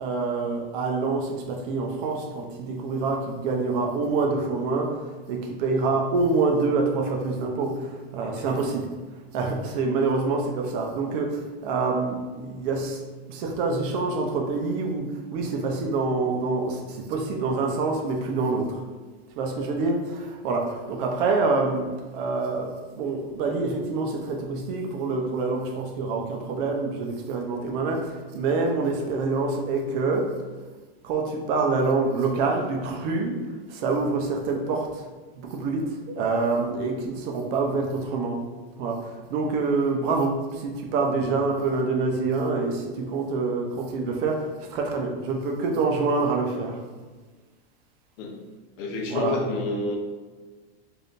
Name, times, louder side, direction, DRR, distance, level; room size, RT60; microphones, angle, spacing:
voice 1, 0.0-8.9 9.3-13.0 13.3-18.8 19.4-30.4 31.0-33.4 33.7-35.0 35.4-38.4 38.8-46.8 49.1-49.4, right 3 dB, 60° right, 2 dB, 0.7 m, -26 dB
voice 2, 48.8-50.0, left 3 dB, 60° left, 1 dB, 0.8 m, -29 dB
3.3 x 2.7 x 2.5 m, 1.4 s
supercardioid pair, 125°, 31 cm